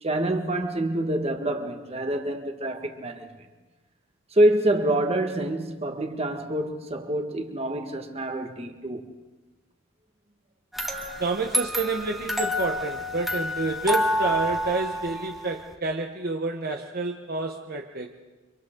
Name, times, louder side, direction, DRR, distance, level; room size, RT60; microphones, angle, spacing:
voice 1, 0.0-3.4 4.3-9.1, right 1 dB, 30° right, 1.6 m, -26 dB
sound 1, 10.7-15.7, equal, ahead, 1.3 m, -28 dB
voice 2, 11.2-18.1, right 3 dB, 50° right, 1.1 m, -29 dB
30.0 x 25.0 x 3.9 m
head